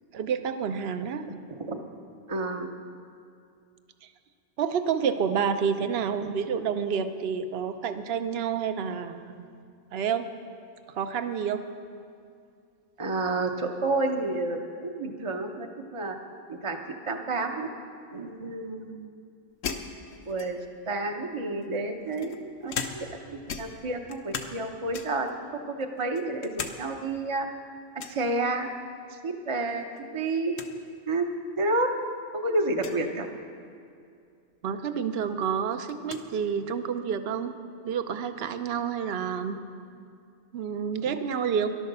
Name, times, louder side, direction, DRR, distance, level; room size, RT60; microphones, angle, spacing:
voice 1, 0.1-1.2 4.0-4.1 4.6-9.5 9.9-10.3 10.9-11.6 32.5-32.6 34.6-37.5 37.8-39.6 40.5-41.7, right 7 dB, 55° right, 9 dB, 0.9 m, -29 dB
voice 2, 1.3-1.8 2.3-2.7 13.0-16.1 16.5-16.8 17.1-17.7 18.1-19.1 20.3-20.6 20.9-25.3 25.7-27.5 28.1-28.7 29.1-29.8 30.1-30.5 31.1-31.3 31.6-31.9 32.3-33.3, right 2 dB, 30° right, 3 dB, 0.7 m, -30 dB
sound 1, 19.6-20.8 21.6-23.2 23.5-24.6 24.9-25.3 25.8-26.8 27.1-27.2 28.0-28.2 29.7-30.0 30.3-30.4 30.5-30.7 31.5-31.6 32.7-33.0 34.7-34.8 35.1-36.3, left 5 dB, 80° left, 1.3 m, -38 dB
13.5 x 11.5 x 6.7 m, 2.4 s
omnidirectional pair, 1.3 m